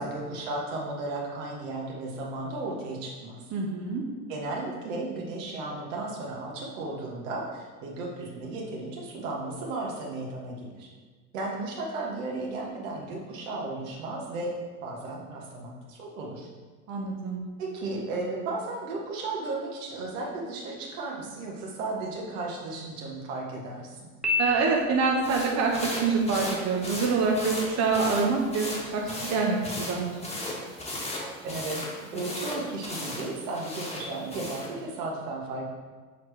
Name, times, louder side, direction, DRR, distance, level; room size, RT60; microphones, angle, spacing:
voice 1, 0.0-3.5 4.3-10.9 11.3-14.5 14.8-16.5 17.6-24.1 30.9-31.0 31.4-35.7, right 2 dB, 70° right, -1 dB, 1.4 m, -34 dB
voice 2, 3.5-4.0 16.9-17.4 24.4-30.2, right 4 dB, 40° right, -1 dB, 1.0 m, -26 dB
Piano, 24.2-25.3, left 2 dB, ahead, 1.2 m, -29 dB
sound 1, 25.2-34.7, left 1 dB, 15° left, 1.5 m, -37 dB
6.8 x 4.5 x 3.3 m, 1.4 s
hypercardioid pair, 70°, 41 cm